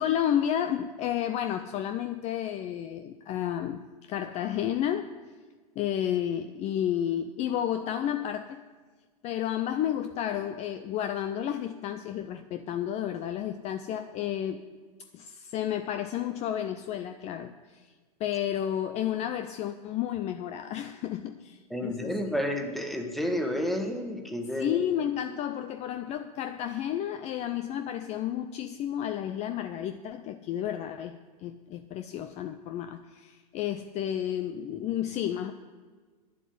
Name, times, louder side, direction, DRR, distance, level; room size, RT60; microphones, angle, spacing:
voice 1, 0.0-3.8 4.1-5.1 5.8-8.6 9.2-14.6 15.1-17.8 18.2-22.4 24.6-35.5, left 10 dB, 35° left, 9 dB, 0.6 m, -31 dB
voice 2, 21.7-24.8, left 1 dB, ahead, 4 dB, 1.5 m, -30 dB
10.0 x 7.4 x 8.6 m, 1.4 s
hypercardioid pair, 100°, 20 cm